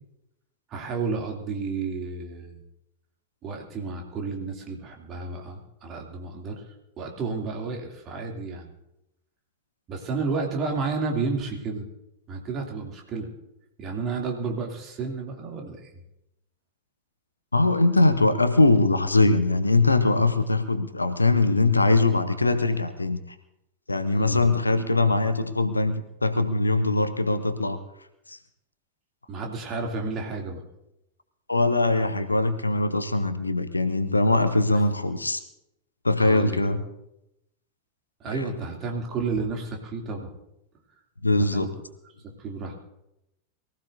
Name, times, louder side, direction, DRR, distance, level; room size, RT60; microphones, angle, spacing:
voice 1, 0.7-2.6 3.4-6.6 7.0-8.7 9.9-11.9 12.3-13.3 13.8-15.9 24.1-24.5 29.3-30.6 36.2-36.8 38.2-40.3 41.5-41.7 42.4-42.7, right 4 dB, 30° right, 1 dB, 2.7 m, -31 dB
voice 2, 17.5-23.2 23.9-27.8 28.3-28.4 31.5-35.4 36.0-36.8 38.3-38.5 41.2-41.7, left 2 dB, 80° left, 10 dB, 0.8 m, -22 dB
23.0 x 15.0 x 2.7 m, 0.84 s
figure-of-eight pair, 90°, 0 cm